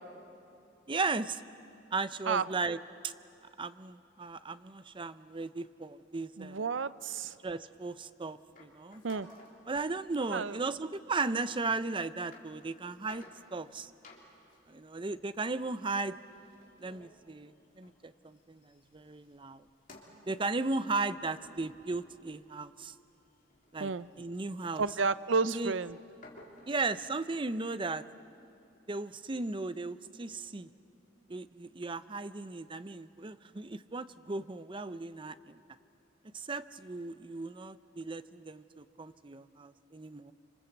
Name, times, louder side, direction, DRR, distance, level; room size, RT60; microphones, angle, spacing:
voice 1, 0.9-1.4 1.9-3.1 3.6-6.7 7.4-9.0 9.7-13.2 13.5-13.9 14.7-16.1 16.8-19.7 20.3-22.9 23.7-25.0 25.4-25.8 26.7-28.0 28.9-30.7 31.3-35.6 36.3-40.3, right 3 dB, 25° right, 13 dB, 0.6 m, -36 dB
voice 2, 6.4-7.3 9.0-9.3 10.3-10.6 23.8-24.1 24.8-26.0, right 4 dB, 75° right, 16 dB, 0.6 m, -31 dB
sound 1, 8.5-9.6 10.1-10.5 11.3-11.4 12.0-12.5 12.8-13.7 14.0-18.1 18.3-22.7 23.1-26.9, left 2 dB, 45° left, 3.5 m, -57 dB
27.0 x 26.0 x 8.0 m, 2.8 s
head